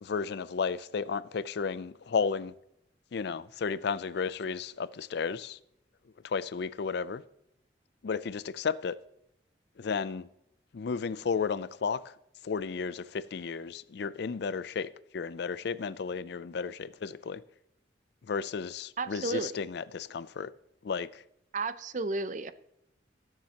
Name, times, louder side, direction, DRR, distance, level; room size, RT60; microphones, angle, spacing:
voice 1, 0.0-2.5 3.1-5.6 6.2-7.2 8.0-9.0 9.8-10.3 10.7-12.1 12.4-17.4 18.3-20.5 20.8-21.2, left 5 dB, 60° left, 0.4 m, -33 dB
voice 2, 19.0-19.7 21.5-22.5, right 3 dB, 40° right, 0.5 m, -33 dB
19.5 x 7.4 x 2.9 m
head